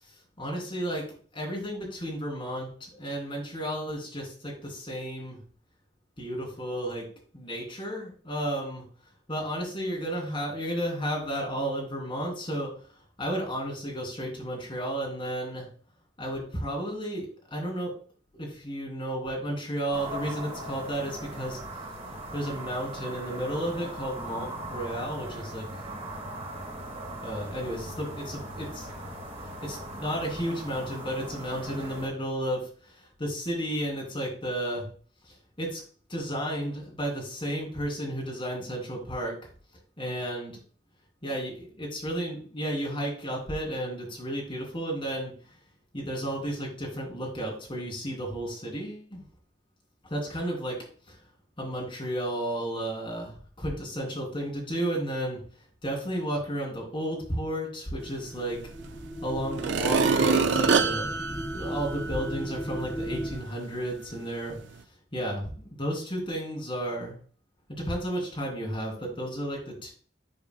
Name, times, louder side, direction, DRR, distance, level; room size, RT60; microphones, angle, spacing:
voice 1, 0.4-5.4 6.2-7.1 7.3-8.8 9.3-12.7 13.2-15.7 16.2-17.9 18.3-21.6 22.3-25.6 27.2-28.9 29.4-34.9 35.3-35.8 36.1-39.4 40.0-40.5 41.2-45.3 45.9-49.2 50.0-50.8 51.1-51.2 51.6-55.4 55.8-58.6 59.2-61.1 61.5-64.6 65.1-67.2 67.7-69.9, right 1 dB, 30° left, -2 dB, 3.0 m, -33 dB
sound 1, 19.9-32.1, right 1 dB, 35° right, 3.4 m, -39 dB
sound 2, 58.0-63.4, equal, 10° left, 1.6 m, -36 dB
sound 3, 58.8-58.9 59.5-62.4 62.8-62.9, right 5 dB, 65° right, 0.5 m, -25 dB
10.0 x 4.7 x 2.2 m, 0.43 s
head